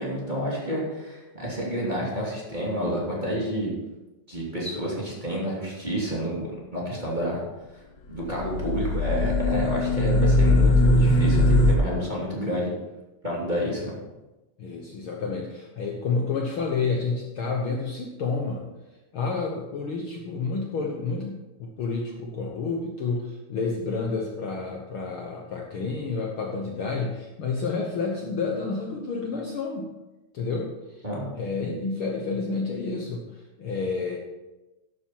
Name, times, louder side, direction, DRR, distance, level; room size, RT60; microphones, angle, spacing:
voice 1, 0.0-3.7 4.3-7.4 8.1-12.7 13.2-13.9 31.0-31.3, equal, 15° right, -5 dB, 2.8 m, -29 dB
sound 1, 8.2-11.8, left 1 dB, 65° left, 1.9 m, -20 dB
voice 2, 14.6-18.7 19.1-29.9 30.3-31.0 31.3-34.2, left 4 dB, 80° left, 0 dB, 1.1 m, -30 dB
11.5 x 8.8 x 4.7 m, 1.0 s
omnidirectional pair, 4.0 m